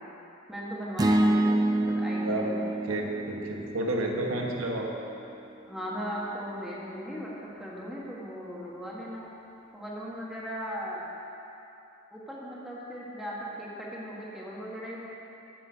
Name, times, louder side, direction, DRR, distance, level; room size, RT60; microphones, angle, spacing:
voice 1, 0.5-3.0 5.7-9.3 9.7-11.1 12.1-15.0, equal, ahead, -6 dB, 1.6 m, -38 dB
sound 1, 1.0-5.3, right 1 dB, 20° right, 0.3 m, -28 dB
voice 2, 2.8-4.9, right 1 dB, 90° right, -1 dB, 1.3 m, -31 dB
7.8 x 7.1 x 8.2 m, 2.9 s
head